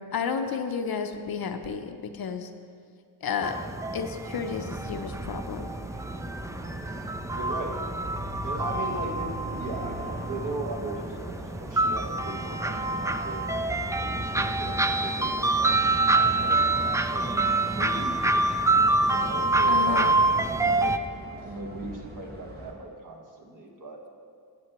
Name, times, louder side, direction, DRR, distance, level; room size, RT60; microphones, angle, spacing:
voice 1, 0.0-2.5 3.2-3.6 3.9-5.7 19.7-20.1, left 6 dB, 60° left, 7 dB, 0.7 m, -32 dB
sound 1, 3.4-21.0, right 2 dB, 10° right, 0.3 m, -26 dB
sound 2, 4.4-22.7, right 1 dB, 25° right, 1.7 m, -41 dB
voice 2, 7.3-7.8 8.4-13.5 14.0-18.4 18.7-21.0 21.4-24.1, right 2 dB, 50° right, 1 dB, 1.5 m, -38 dB
13.5 x 7.7 x 3.0 m, 2.2 s
cardioid pair, 65°, 40 cm